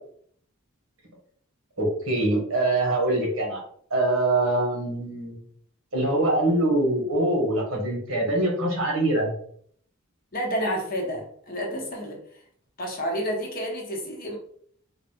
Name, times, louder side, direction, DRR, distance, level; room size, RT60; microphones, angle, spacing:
voice 1, 1.8-3.6 3.9-5.4 5.9-9.3, right 1 dB, 75° right, -1 dB, 1.5 m, -24 dB
voice 2, 10.3-12.2 12.8-14.4, equal, 45° left, 0 dB, 1.0 m, -30 dB
3.8 x 2.4 x 3.5 m, 0.62 s
head